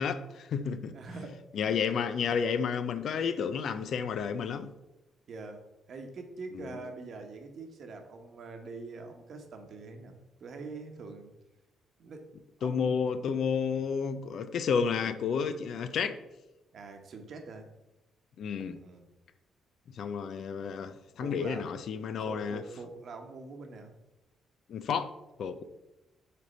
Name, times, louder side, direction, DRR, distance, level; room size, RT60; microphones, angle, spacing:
voice 1, 0.0-0.9 1.5-4.7 6.5-6.6 12.6-16.2 18.4-18.8 19.9-22.6 24.7-25.1 25.4-25.6, left 6 dB, 65° left, 0.5 m, -31 dB
voice 2, 0.9-1.7 5.3-10.1 10.4-11.3 12.0-12.9 16.7-17.7 18.7-19.0 21.2-21.7 22.2-23.9, right 3 dB, 60° right, 1.1 m, -44 dB
6.6 x 3.5 x 5.3 m
cardioid pair, 90°, 0 cm